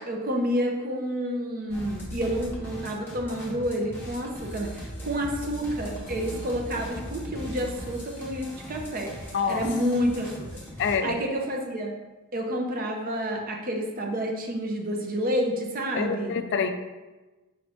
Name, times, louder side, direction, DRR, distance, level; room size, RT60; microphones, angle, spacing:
voice 1, 0.0-9.1 9.5-10.3 11.0-11.9 12.3-16.4, equal, 40° right, 1 dB, 0.6 m, -29 dB
sound 1, 1.7-11.0, equal, 10° left, 0.8 m, -39 dB
voice 2, 10.8-11.2 15.9-16.7, left 6 dB, 50° left, 8 dB, 0.3 m, -26 dB
4.9 x 2.6 x 3.4 m, 1.2 s
head